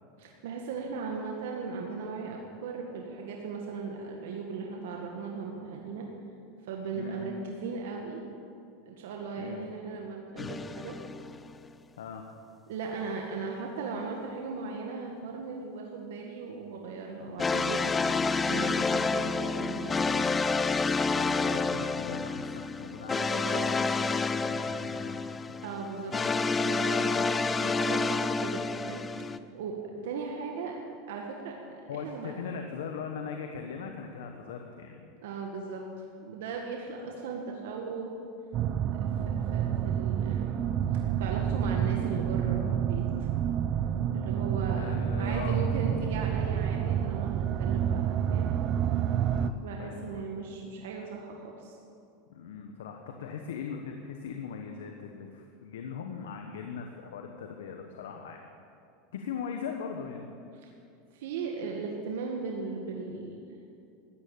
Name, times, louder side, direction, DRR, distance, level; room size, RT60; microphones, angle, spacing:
voice 1, 0.2-6.0 6.6-8.2 8.8-10.9 12.7-17.9 18.5-20.2 21.0-21.7 23.1-23.6 25.6-26.1 26.6-29.8 30.0-30.8 31.1-32.3 35.2-38.1 38.9-39.0 39.2-40.6 40.9-43.3 44.1-48.5 49.6-51.8 60.6-60.7 61.1-63.5, right 4 dB, 80° right, 0 dB, 1.7 m, -38 dB
sound 1, 10.4-11.5 17.4-29.4, left 4 dB, 20° left, 0.4 m, -29 dB
voice 2, 12.0-12.3 17.3-17.4 21.1-25.6 26.1-26.2 29.1-29.3 31.9-35.1 39.1-39.4 43.7-43.9 44.8-45.6 49.3-50.2 52.3-58.4 59.1-60.3, left 6 dB, 90° left, 3 dB, 1.2 m, -40 dB
sound 2, 38.5-49.5, right 9 dB, 40° right, 0.6 m, -29 dB
14.5 x 9.4 x 8.6 m, 2.5 s
supercardioid pair, 125°, 0 cm